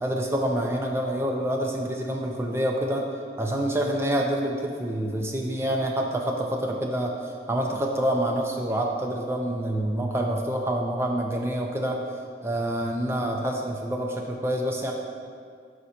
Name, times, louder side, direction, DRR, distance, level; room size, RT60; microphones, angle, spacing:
voice 1, 0.0-3.1 3.4-7.1 7.5-12.0 12.4-14.9, right 1 dB, 15° right, 1 dB, 0.4 m, -27 dB
5.3 x 5.0 x 4.3 m, 2.2 s
head